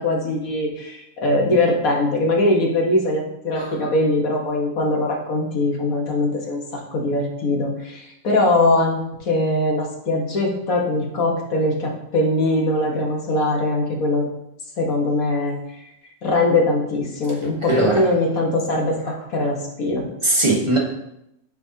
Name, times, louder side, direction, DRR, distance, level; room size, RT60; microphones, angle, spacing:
voice 1, 0.0-14.3 14.8-15.6 16.2-20.1, left 2 dB, 75° left, -1 dB, 1.8 m, -21 dB
voice 2, 17.6-18.0 20.2-20.8, right 2 dB, 20° right, -1 dB, 1.2 m, -19 dB
8.7 x 5.3 x 2.8 m, 0.81 s
omnidirectional pair, 1.5 m